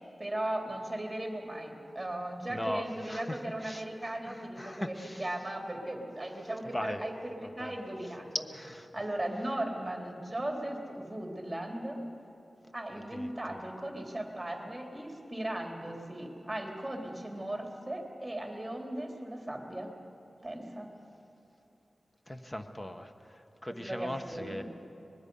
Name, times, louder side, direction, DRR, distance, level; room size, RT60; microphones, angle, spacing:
voice 1, 0.2-8.3 8.9-12.0 12.7-19.9 20.4-20.9 23.9-24.6, right 1 dB, 15° right, 1 dB, 3.3 m, -37 dB
voice 2, 2.5-5.3 6.7-7.0 7.4-7.7 8.5-8.9 13.1-13.6 22.3-24.6, left 1 dB, 20° left, 7 dB, 1.2 m, -39 dB
24.0 x 20.5 x 5.5 m, 2.8 s
wide cardioid pair, 80°, 0 cm